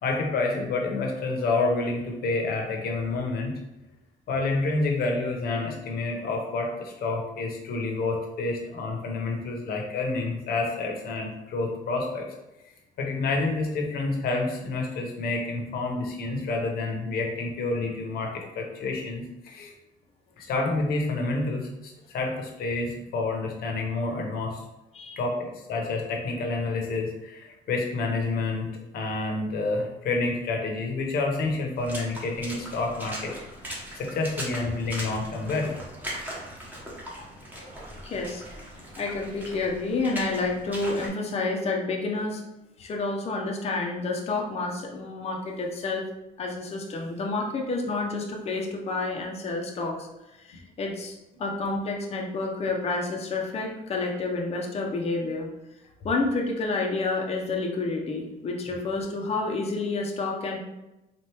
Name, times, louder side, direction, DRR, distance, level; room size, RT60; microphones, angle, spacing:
voice 1, 0.0-3.5 4.3-12.3 13.0-19.7 20.4-24.6 25.2-28.7 28.9-33.3 33.9-35.8, left 3 dB, 65° left, 1 dB, 1.0 m, -28 dB
Water / Splash splatter, 31.8-41.1, equal, 10° right, 1.1 m, -39 dB
voice 2, 38.0-38.7 39.0-42.4 42.8-46.0 46.4-50.1 50.4-55.5 56.0-60.6, left 3 dB, 35° left, 0 dB, 0.7 m, -29 dB
4.4 x 2.5 x 3.3 m, 0.96 s
cardioid pair, 110°, 17 cm